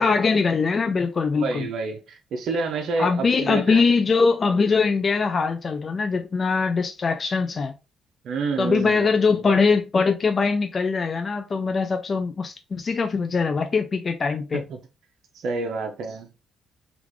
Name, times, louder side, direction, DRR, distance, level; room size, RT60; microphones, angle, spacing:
voice 1, 0.0-1.7 3.0-7.7 8.6-14.6, left 4 dB, 40° left, 0.3 m, -22 dB
voice 2, 1.4-3.8 8.2-9.5 14.5-14.8 15.3-16.3, right 4 dB, 70° right, 0.6 m, -29 dB
3.4 x 2.4 x 3.1 m
cardioid pair, 90°, 0 cm